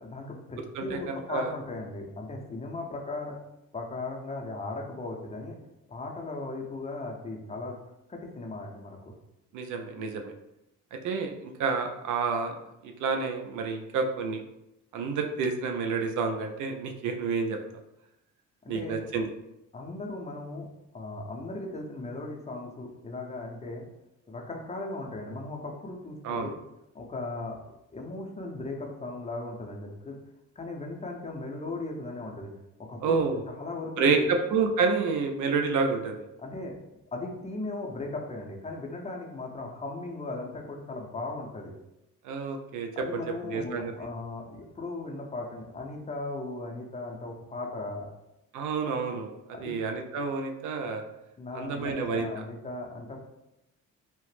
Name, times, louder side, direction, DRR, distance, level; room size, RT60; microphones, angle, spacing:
voice 1, 0.0-3.4 3.7-5.6 5.9-7.8 8.1-9.1 18.6-19.0 19.7-20.7 20.9-23.9 24.3-26.5 26.9-27.6 27.9-30.2 30.6-32.5 32.9-34.3 36.4-36.7 37.1-41.7 42.9-48.1 49.5-49.8 51.4-53.2, left 2 dB, 20° left, 0 dB, 0.6 m, -37 dB
voice 2, 0.7-1.5 9.5-10.3 10.9-12.5 12.8-14.4 14.9-17.6 18.7-19.3 26.2-26.5 33.0-33.4 34.0-36.2 42.2-43.9 48.5-49.3 49.6-51.0 51.5-52.3, right 4 dB, 80° right, 4 dB, 0.4 m, -29 dB
2.9 x 2.0 x 3.1 m, 0.88 s
cardioid pair, 90°, 30 cm